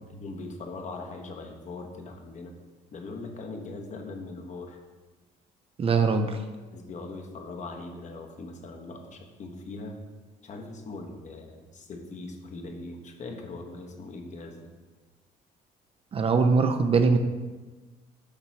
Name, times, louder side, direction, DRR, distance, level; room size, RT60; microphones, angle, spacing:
voice 1, 0.0-2.5 2.9-4.8 6.7-10.0 10.4-14.7, left 3 dB, 45° left, 3 dB, 0.9 m, -40 dB
voice 2, 5.8-6.4 16.1-17.2, right 4 dB, 35° right, 7 dB, 0.5 m, -22 dB
6.7 x 3.0 x 5.6 m, 1.3 s
cardioid pair, 110°, 17 cm